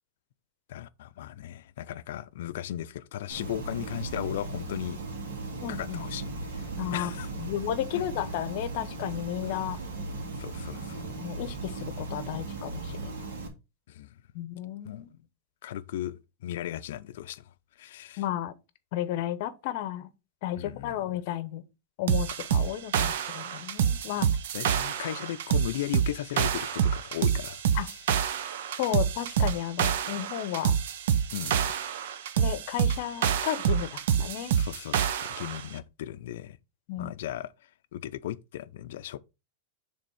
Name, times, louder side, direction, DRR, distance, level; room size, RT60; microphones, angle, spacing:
voice 1, 0.7-5.0 5.7-6.2 6.5-7.3 9.4-9.7 10.4-11.1 13.9-14.1 14.8-15.2 15.6-17.4 17.8-18.2 20.5-21.2 24.5-28.0 31.3-31.7 34.5-36.6 37.0-37.5 37.9-39.2, left 12 dB, 70° left, 0.5 m, -37 dB
sound 1, 3.3-13.5, right 3 dB, 85° right, 1.9 m, -37 dB
voice 2, 5.6-6.0 6.8-7.1 7.4-9.8 11.2-13.3 14.3-15.1 18.2-18.5 18.9-20.1 20.4-21.6 22.0-24.3 27.7-27.9 28.8-30.8 32.4-34.5 36.9-37.1, left 12 dB, 50° left, 0.8 m, -33 dB
sound 2, 22.1-35.6, right 8 dB, 70° right, 0.7 m, -27 dB
6.7 x 3.5 x 4.8 m
supercardioid pair, 160°, 0 cm